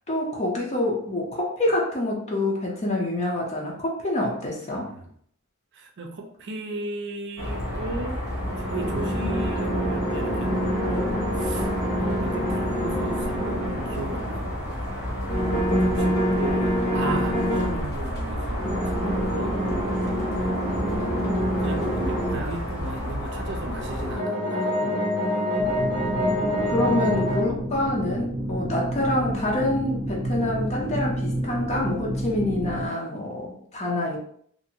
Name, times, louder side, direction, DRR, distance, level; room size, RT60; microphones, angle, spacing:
voice 1, 0.1-4.9 15.7-16.4 26.7-34.2, left 1 dB, 30° left, -2 dB, 0.6 m, -26 dB
voice 2, 4.8-5.1 5.7-8.2 8.5-14.9 15.9-19.6 20.4-25.0 26.0-26.3, right 2 dB, 55° right, 3 dB, 0.5 m, -36 dB
sound 1, 7.4-24.2, equal, 50° left, 0.9 m, -31 dB
sound 2, 8.3-14.4 15.3-17.8 18.6-22.4 23.7-27.4, equal, 70° left, 1.1 m, -26 dB
sound 3, 25.6-32.9, right 1 dB, 25° right, 0.8 m, -30 dB
2.6 x 2.5 x 2.8 m, 0.63 s
head